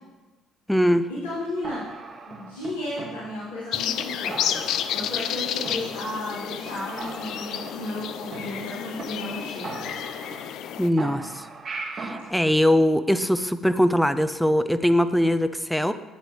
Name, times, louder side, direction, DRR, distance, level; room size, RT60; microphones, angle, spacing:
voice 1, 0.7-1.1 10.8-11.4 12.0-15.9, equal, ahead, 11 dB, 0.5 m, -21 dB
voice 2, 1.2-1.8 2.3-4.6 4.9-9.7, left 1 dB, 75° left, -12 dB, 3.5 m, -33 dB
sound 1, 1.6-3.6 4.0-4.1 4.3-5.4 5.6-6.4 6.6-6.7 7.0-9.0 9.3-9.4 9.6-10.7 11.0-12.3, right 3 dB, 35° right, 1.1 m, -38 dB
sound 2, 3.7-10.9, left 10 dB, 55° left, 0.4 m, -31 dB
12.5 x 9.2 x 3.2 m, 1.2 s
figure-of-eight pair, 45°, 0 cm